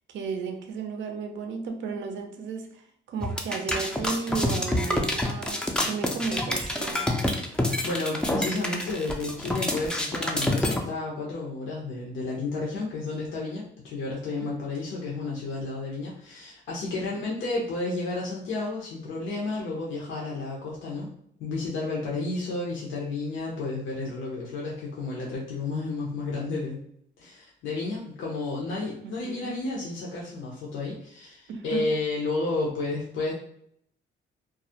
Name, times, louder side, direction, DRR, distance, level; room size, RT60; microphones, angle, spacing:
voice 1, 0.1-7.1 14.4-14.5 16.9-17.4 29.0-29.5 31.5-31.9, right 5 dB, 65° right, 0.5 m, -34 dB
sound 1, 3.2-10.8, left 1 dB, 5° left, 0.3 m, -27 dB
voice 2, 7.8-21.1 21.4-26.8 27.2-33.3, left 3 dB, 75° left, 0.6 m, -31 dB
2.3 x 2.0 x 2.7 m
cardioid pair, 90°, 20 cm